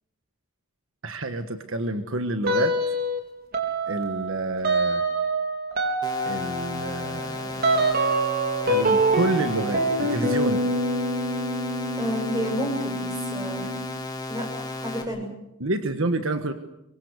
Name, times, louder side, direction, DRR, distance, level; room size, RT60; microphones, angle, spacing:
voice 1, 1.0-2.8 3.9-5.0 6.2-7.9 8.6-10.6 15.6-16.5, right 2 dB, 70° right, 8 dB, 1.5 m, -28 dB
sound 1, 2.5-3.2 3.5-13.9, right 2 dB, 50° right, 4.3 m, -26 dB
sound 2, 6.0-15.0, left 2 dB, 20° left, 3.5 m, -34 dB
voice 2, 12.0-13.6 14.3-15.3, equal, 20° right, 4 dB, 7.5 m, -30 dB
25.0 x 23.0 x 8.1 m, 0.84 s
head